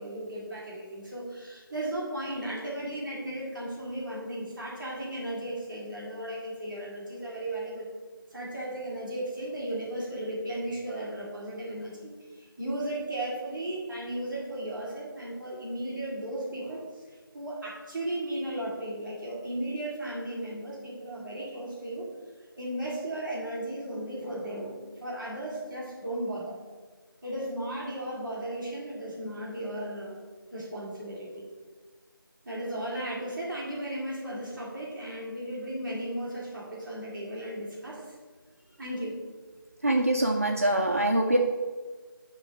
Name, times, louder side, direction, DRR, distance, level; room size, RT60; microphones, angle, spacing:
voice 1, 0.0-7.9 8.3-17.0 17.3-22.1 22.6-26.6 27.2-30.2 30.5-31.5 32.4-38.1 38.8-39.2, right 1 dB, ahead, -16 dB, 1.2 m, -35 dB
voice 2, 39.8-41.4, right 1 dB, 40° right, 2 dB, 0.5 m, -24 dB
8.1 x 3.8 x 6.2 m, 1.4 s
figure-of-eight pair, 170°, 12 cm